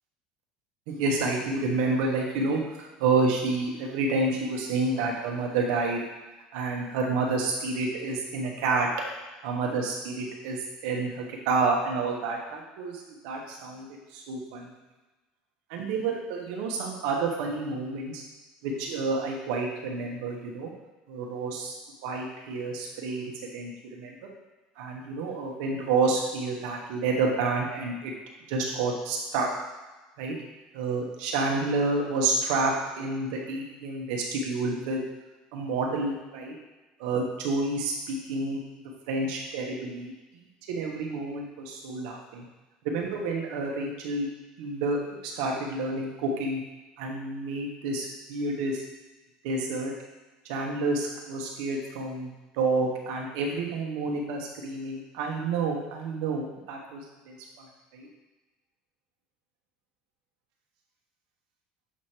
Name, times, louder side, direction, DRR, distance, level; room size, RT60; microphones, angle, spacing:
voice 1, 0.9-6.0 6.5-8.9 9.4-13.9 14.1-14.7 15.7-18.2 18.6-20.7 21.1-21.7 22.0-24.2 24.8-28.1 28.5-29.5 30.2-30.4 30.7-35.0 35.5-36.5 37.0-38.8 39.1-40.4 40.7-42.5 42.8-44.3 44.6-46.6 47.0-48.8 49.4-49.9 50.5-57.7 57.9-58.1, right 3 dB, 80° right, 0 dB, 1.2 m, -29 dB
7.2 x 3.2 x 4.4 m, 1.2 s
supercardioid pair, 100°, 3 cm